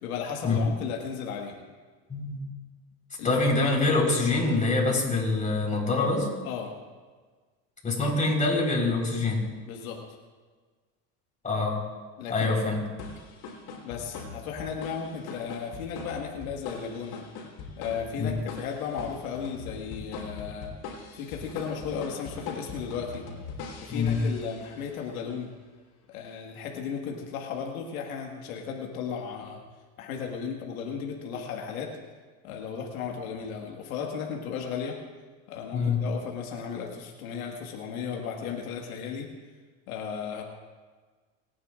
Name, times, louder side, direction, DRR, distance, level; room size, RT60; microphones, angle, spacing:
voice 1, 0.0-1.5 3.2-3.3 6.4-6.7 9.7-10.0 12.2-12.5 13.8-17.2 17.8-20.7 21.1-23.3 23.8-25.5 26.1-29.6 30.0-31.9 32.4-35.0 35.5-39.3 39.9-40.4, left 6 dB, 90° left, 1 dB, 1.8 m, -35 dB
voice 2, 2.1-2.5 3.2-6.3 7.8-9.4 11.4-11.8 12.3-12.8 18.2-18.3 23.9-24.2 35.7-36.0, left 3 dB, 20° left, -2 dB, 4.2 m, -25 dB
sound 1, 13.0-24.9, left 4 dB, 65° left, 3.6 m, -41 dB
29.0 x 10.0 x 2.5 m, 1.4 s
supercardioid pair, 95°, 41 cm